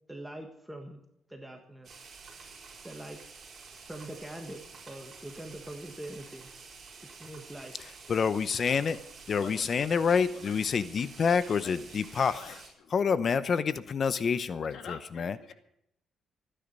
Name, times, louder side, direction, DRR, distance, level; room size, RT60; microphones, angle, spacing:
voice 1, 0.1-1.0 1.3-2.0 2.8-3.2 3.9-4.6 4.9-6.5 7.2-7.7, right 1 dB, 5° right, 3 dB, 1.5 m, -43 dB
sound 1, 1.8-12.7, right 5 dB, 40° right, 4.9 m, -50 dB
voice 2, 8.1-9.0 9.3-12.4 12.9-15.4, left 6 dB, 40° left, 15 dB, 0.7 m, -27 dB
voice 3, 9.3-9.7 10.3-10.7 11.5-12.9 14.7-15.5, left 6 dB, 70° left, 6 dB, 2.4 m, -47 dB
26.0 x 10.0 x 5.4 m, 0.78 s
cardioid pair, 140°, 0 cm